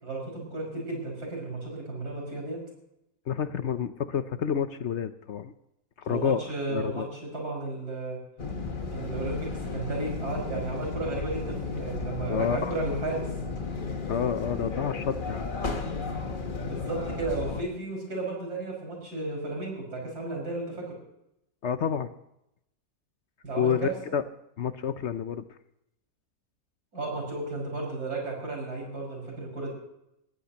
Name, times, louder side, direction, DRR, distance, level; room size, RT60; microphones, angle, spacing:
voice 1, 0.0-2.6 6.1-8.2 8.9-13.3 16.6-21.0 23.4-23.9 26.9-29.7, right 2 dB, 85° right, 0 dB, 6.3 m, -34 dB
voice 2, 3.3-5.5 6.0-6.4 6.7-7.1 12.3-12.8 14.1-15.5 21.6-22.1 23.6-24.2 24.6-25.4, left 7 dB, 55° left, 11 dB, 0.9 m, -29 dB
sound 1, 8.4-17.6, left 4 dB, 35° left, 1.3 m, -34 dB
20.0 x 15.5 x 2.9 m, 0.81 s
omnidirectional pair, 1.6 m